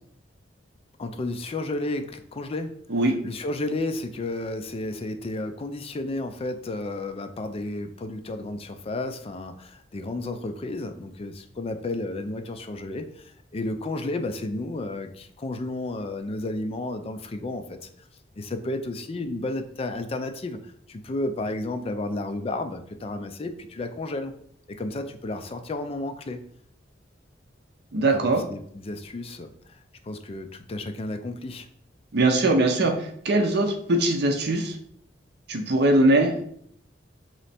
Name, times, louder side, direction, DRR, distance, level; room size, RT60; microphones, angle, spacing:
voice 1, 1.0-2.8 3.2-17.9 18.4-24.3 24.7-26.5 28.1-29.8 30.0-31.7, left 2 dB, 30° left, 8 dB, 0.4 m, -32 dB
voice 2, 27.9-28.4 32.1-34.8 35.5-36.4, right 2 dB, 60° right, 4 dB, 0.6 m, -21 dB
3.2 x 3.1 x 4.2 m, 0.65 s
head